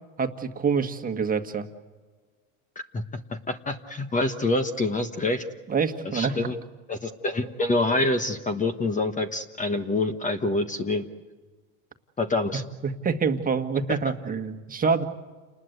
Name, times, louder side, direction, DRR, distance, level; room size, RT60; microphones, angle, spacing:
voice 1, 0.2-1.7 5.7-6.4 12.8-15.0, right 5 dB, 20° right, 6 dB, 1.7 m, -26 dB
voice 2, 3.3-5.4 6.1-6.5 6.9-11.1 12.2-12.6, left 2 dB, 20° left, 9 dB, 1.3 m, -26 dB
30.0 x 20.5 x 8.1 m, 1.4 s
supercardioid pair, 125°, 42 cm